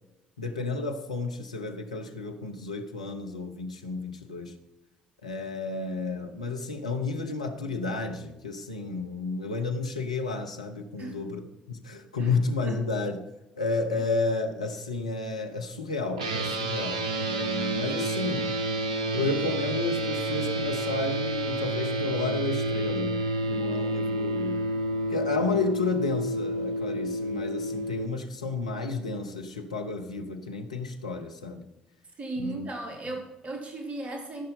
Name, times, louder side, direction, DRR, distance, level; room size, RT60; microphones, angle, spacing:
voice 1, 0.4-4.6 5.2-13.2 13.6-18.6 19.1-24.7 25.1-31.7 32.4-32.7 33.1-33.2, left 3 dB, 85° left, 4 dB, 0.9 m, -32 dB
sound 1, 16.2-28.1, right 1 dB, 80° right, 0.7 m, -29 dB
voice 2, 32.2-34.5, right 2 dB, 35° right, 2 dB, 3.3 m, -36 dB
15.0 x 5.6 x 5.5 m, 0.98 s
figure-of-eight pair, 50°, 4 cm